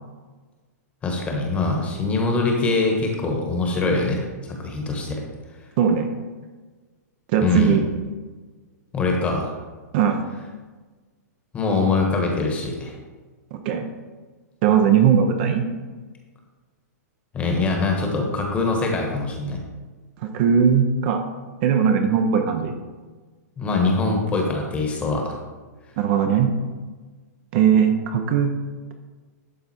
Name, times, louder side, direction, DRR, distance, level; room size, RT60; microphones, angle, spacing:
voice 1, 1.0-5.2 7.4-7.8 8.9-9.5 11.5-12.9 17.3-19.6 23.6-25.4, left 3 dB, 15° left, 1 dB, 1.3 m, -23 dB
voice 2, 5.8-6.2 7.3-7.9 9.9-10.2 13.5-13.9 14.6-15.6 20.2-21.2 21.6-22.7 26.0-26.5 27.5-28.5, right 7 dB, 35° right, 5 dB, 0.7 m, -19 dB
11.5 x 3.9 x 4.3 m, 1.3 s
hypercardioid pair, 160°, 9 cm